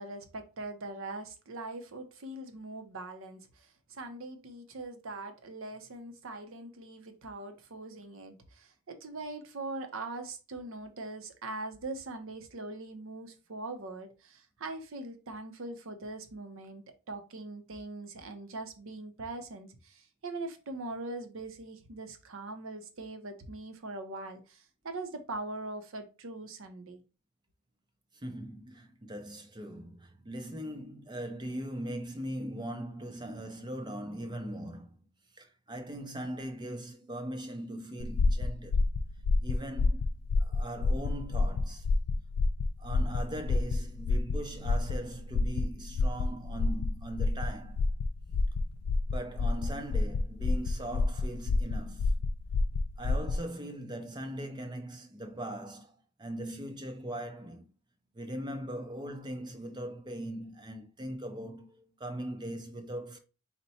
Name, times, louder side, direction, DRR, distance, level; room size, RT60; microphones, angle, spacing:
voice 1, 0.0-27.0, right 2 dB, 65° right, 0.7 m, -42 dB
voice 2, 28.1-34.9 35.4-38.9 39.4-40.0 40.4-41.9 42.8-47.8 49.1-52.2 53.0-57.7 58.1-63.2, right 1 dB, 20° right, 0.5 m, -40 dB
sound 1, 38.0-53.4, left 3 dB, 85° left, 0.3 m, -29 dB
4.2 x 2.2 x 4.1 m
head